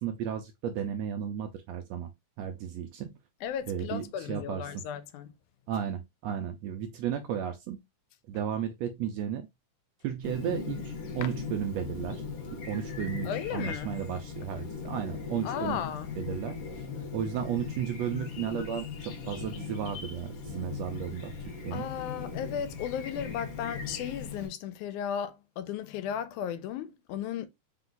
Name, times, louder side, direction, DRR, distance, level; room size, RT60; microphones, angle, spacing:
voice 1, 0.0-2.1 2.4-3.2 3.7-4.6 5.7-7.8 8.3-9.5 10.0-12.2 12.5-15.8 16.2-16.9 17.1-21.3 21.6-21.9, right 9 dB, 80° right, 1.6 m, -34 dB
voice 2, 3.4-5.3 8.3-8.4 11.2-11.3 13.2-13.9 15.4-16.1 21.7-27.5, left 9 dB, 85° left, 2.1 m, -35 dB
Chirp tweet, 10.2-24.5, left 5 dB, 55° left, 1.6 m, -39 dB
4.7 x 2.3 x 3.8 m
omnidirectional pair, 3.4 m